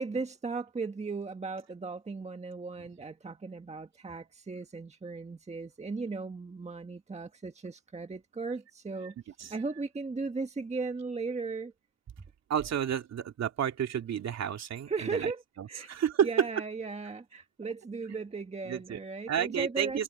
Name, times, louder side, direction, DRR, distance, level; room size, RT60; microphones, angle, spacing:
voice 1, 0.0-9.1 9.4-11.7 14.9-15.4 15.7-15.9 16.2-20.0, right 4 dB, 20° right, 1.6 m, -37 dB
voice 2, 12.5-15.3 15.6-16.3 18.7-19.0 19.3-20.0, right 9 dB, 60° right, 2.6 m, -31 dB
cardioid pair, 90°, 30 cm